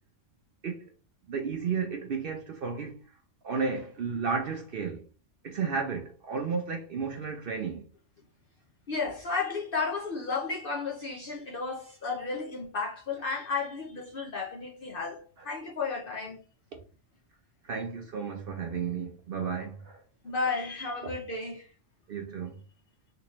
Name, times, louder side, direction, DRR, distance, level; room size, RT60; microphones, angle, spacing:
voice 1, 1.3-3.0 3.4-5.0 5.4-7.8 15.4-15.6 17.6-20.0 22.1-22.6, right 5 dB, 60° right, 0.6 m, -33 dB
voice 2, 8.9-16.4 20.2-21.7, left 4 dB, 55° left, 0.6 m, -33 dB
3.4 x 3.0 x 3.0 m
omnidirectional pair, 1.4 m